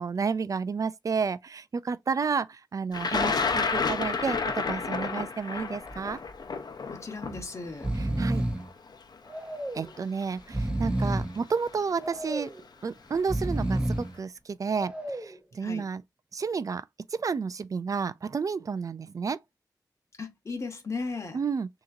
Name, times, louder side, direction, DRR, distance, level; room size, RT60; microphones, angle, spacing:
voice 1, 0.0-6.2 8.2-8.4 9.7-12.5 12.8-16.0 16.3-16.8 17.1-19.4 21.3-21.7, right 5 dB, 50° right, 0.4 m, -31 dB
Thunder, 2.9-8.9 9.9-10.0 11.1-11.4 11.7-12.1, left 4 dB, 65° left, 0.8 m, -30 dB
Breathing, 5.6-5.9 6.3-6.4 7.2-7.4 7.7-8.7 9.3-9.9 10.4-11.4 12.0-12.6 13.1-14.2 14.7-15.4, right 1 dB, 15° right, 0.8 m, -30 dB
voice 2, 6.9-7.9 15.6-15.9 20.2-21.4, left 3 dB, 40° left, 1.2 m, -36 dB
6.3 x 2.9 x 2.6 m
wide cardioid pair, 135°, 7 cm